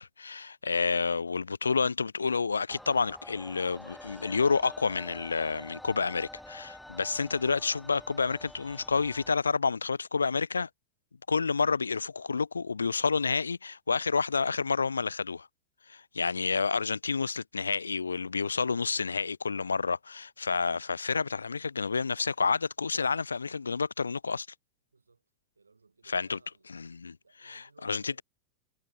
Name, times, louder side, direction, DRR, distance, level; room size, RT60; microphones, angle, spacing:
voice 1, 0.0-10.7 11.3-15.5 15.9-24.5 26.1-26.4 26.7-27.2 27.4-28.2, left 5 dB, 75° left, 0.3 m, -29 dB
sound 1, 2.7-9.4, left 1 dB, 5° left, 1.3 m, -48 dB
voice 2, 24.9-25.2 25.5-26.7 27.2-28.2, right 4 dB, 80° right, 4.7 m, -61 dB
figure-of-eight pair, 90°, 0 cm